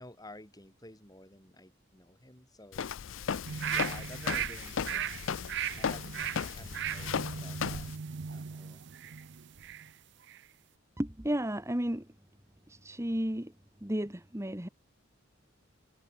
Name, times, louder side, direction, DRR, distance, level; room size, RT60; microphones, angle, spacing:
voice 1, 0.0-2.9 3.6-5.1 5.8-7.9 8.3-8.9, left 1 dB, 20° left, 7.7 m, -52 dB
Walk footsteps, 2.7-7.9, left 7 dB, 65° left, 0.5 m, -36 dB
sound 1, 3.5-9.9 10.3-10.4, right 8 dB, 60° right, 0.6 m, -37 dB
voice 2, 11.0-12.1 12.7-13.5 13.8-14.7, right 1 dB, 15° right, 1.4 m, -33 dB
head